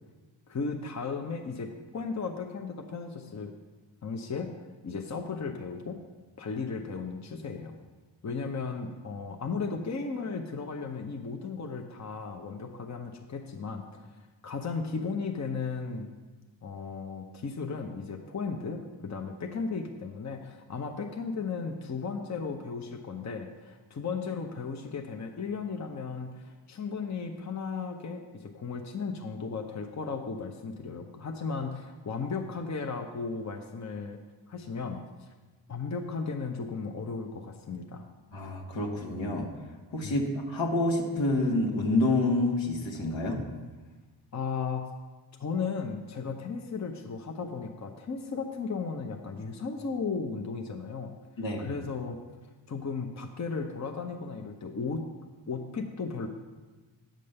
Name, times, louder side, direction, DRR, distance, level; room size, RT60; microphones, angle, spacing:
voice 1, 0.5-3.6 4.0-4.5 4.8-6.0 6.4-7.8 8.2-14.2 14.4-16.1 16.6-34.2 34.5-35.3 35.7-38.1 40.0-40.1 44.3-44.9 45.4-51.1 51.6-52.2 52.7-55.1 55.5-56.3, left 5 dB, 40° left, 4 dB, 0.9 m, -35 dB
voice 2, 38.3-39.5 39.9-43.4 51.4-51.7, left 2 dB, 80° left, 1 dB, 1.7 m, -28 dB
8.8 x 5.3 x 6.6 m, 1.3 s
cardioid pair, 60°, 46 cm